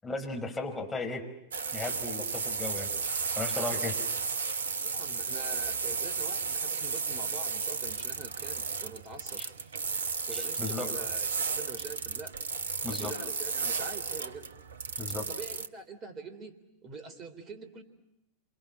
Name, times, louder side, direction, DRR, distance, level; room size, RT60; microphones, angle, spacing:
voice 1, 0.0-1.2 1.7-2.9 3.4-4.0 9.4-9.5 10.3-10.9 12.8-13.1 15.0-15.3, left 3 dB, 10° left, 2 dB, 5.5 m, -35 dB
sound 1, 1.5-15.7, right 5 dB, 65° right, 0.9 m, -33 dB
voice 2, 4.8-9.4 10.3-12.3 12.8-14.5 15.3-16.6 16.8-17.8, right 3 dB, 25° right, 9 dB, 3.5 m, -45 dB
28.0 x 28.0 x 7.6 m, 0.88 s
figure-of-eight pair, 90°, 0 cm